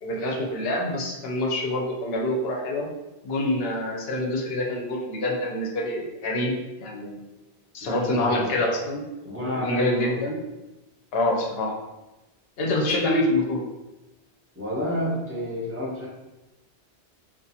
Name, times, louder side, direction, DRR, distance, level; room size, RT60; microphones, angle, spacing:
voice 1, 0.0-2.9 3.2-6.5 6.8-7.1 7.7-9.0 9.6-10.4 11.1-11.7 12.6-13.6, left 1 dB, 65° left, -1 dB, 0.8 m, -26 dB
voice 2, 7.8-8.6 9.2-10.2 14.5-16.1, left 1 dB, 15° right, -7 dB, 0.6 m, -30 dB
2.4 x 2.4 x 2.7 m, 1.0 s
omnidirectional pair, 1.1 m